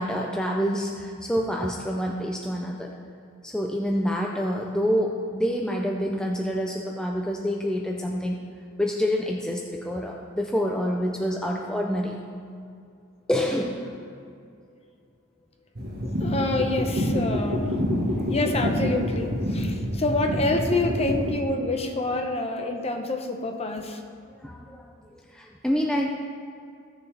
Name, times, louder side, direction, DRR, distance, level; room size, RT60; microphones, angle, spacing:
voice 1, 0.0-2.9 3.4-8.4 8.8-12.2 13.3-13.9 24.4-24.9 25.1-26.1, equal, 5° left, -1 dB, 0.5 m, -27 dB
sound 1, 15.7-21.3, equal, 50° right, 1.5 m, -27 dB
voice 2, 16.0-17.8 18.3-24.0, left 2 dB, 30° left, 4 dB, 0.8 m, -27 dB
16.0 x 6.8 x 3.4 m, 2.4 s
head